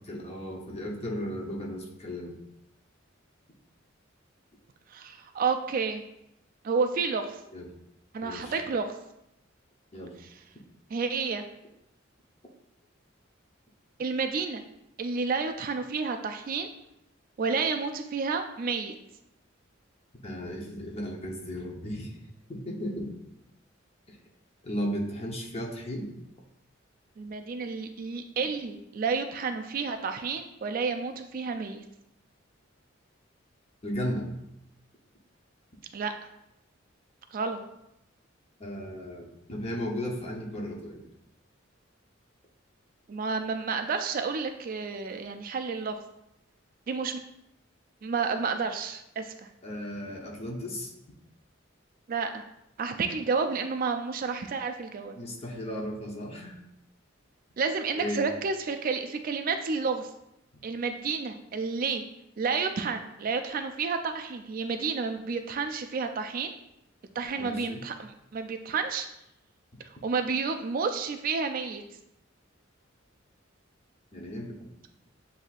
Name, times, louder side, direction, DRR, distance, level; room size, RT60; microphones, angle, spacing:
voice 1, 0.1-2.4 7.5-7.7 8.2-8.5 9.9-10.1 20.2-22.1 22.5-23.1 24.1-24.2 24.6-26.1 33.8-34.3 38.6-41.0 49.6-50.9 55.2-56.6 58.0-58.2 67.4-67.8 74.1-74.7, equal, 30° left, -1 dB, 0.8 m, -35 dB
voice 2, 4.9-6.0 6.6-7.4 8.1-8.9 10.9-11.4 14.0-14.6 15.0-16.7 17.4-18.9 27.2-31.8 35.9-36.1 37.3-37.6 43.1-46.0 46.9-47.2 48.0-49.3 52.1-52.4 52.8-55.2 57.6-60.1 60.6-62.0 62.4-66.5 67.2-69.1 70.0-71.8, right 5 dB, 45° right, 6 dB, 0.3 m, -30 dB
7.7 x 2.7 x 2.4 m, 0.81 s
head